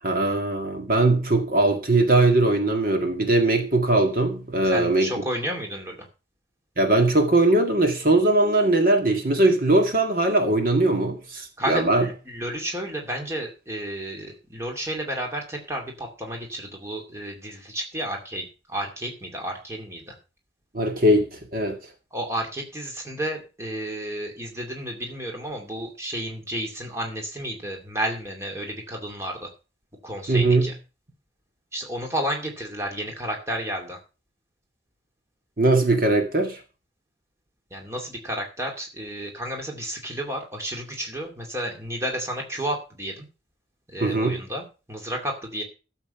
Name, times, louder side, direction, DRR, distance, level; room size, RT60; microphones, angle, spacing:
voice 1, 0.0-5.1 6.8-12.1 20.7-21.8 30.3-30.7 35.6-36.6 44.0-44.4, right 2 dB, 50° right, 1.9 m, -20 dB
voice 2, 4.6-6.1 11.6-20.2 22.1-29.5 30.0-30.7 31.7-34.0 37.7-43.3 43.9-45.6, right 1 dB, 15° right, 2.4 m, -32 dB
13.0 x 7.3 x 5.7 m
head